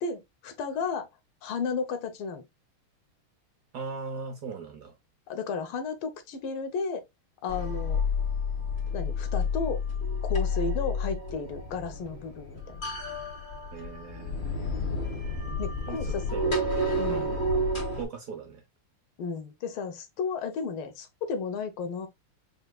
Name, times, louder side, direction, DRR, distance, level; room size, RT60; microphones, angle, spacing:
voice 1, 0.0-1.1 1.4-2.4 5.3-7.1 7.4-8.0 8.9-9.8 10.3-12.8 15.6-16.3 17.0-17.3 19.2-22.1, left 5 dB, 80° left, 1.7 m, -33 dB
voice 2, 3.7-4.9 13.7-14.6 15.9-16.6 17.1-17.3 18.0-18.6, right 5 dB, 60° right, 1.2 m, -38 dB
sound 1, 7.5-18.0, left 2 dB, 25° left, 1.3 m, -30 dB
5.4 x 3.0 x 2.3 m
omnidirectional pair, 2.4 m